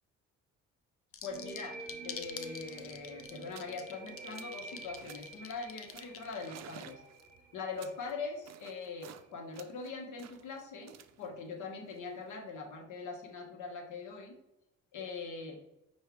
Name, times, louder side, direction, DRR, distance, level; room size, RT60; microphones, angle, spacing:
sound 1, 1.1-6.7, left 7 dB, 50° left, 0.5 m, -46 dB
voice 1, 1.2-7.0 7.5-14.3 14.9-15.6, left 4 dB, 75° left, 3 dB, 1.1 m, -42 dB
sound 2, 1.3-8.7, right 3 dB, 30° right, 1.1 m, -49 dB
sound 3, 2.4-2.5 2.7-3.0 3.4-3.8 4.1-4.6 5.0-5.4 5.9-9.3 9.5-12.6, right 11 dB, 60° right, 0.4 m, -54 dB
5.8 x 2.6 x 3.4 m, 0.88 s
cardioid pair, 90°, 30 cm